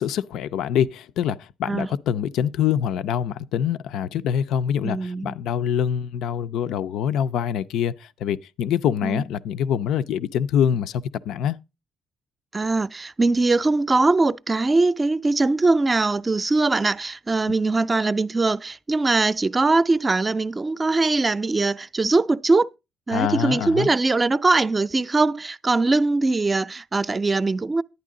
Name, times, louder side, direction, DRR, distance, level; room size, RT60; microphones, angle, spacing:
voice 1, 0.0-11.6 23.1-23.9, left 9 dB, 85° left, 0.5 m, -25 dB
voice 2, 4.8-5.3 9.0-9.2 12.5-22.7 23.1-27.8, right 3 dB, 25° right, 0.5 m, -21 dB
11.0 x 9.2 x 3.7 m
cardioid pair, 90°, 0 cm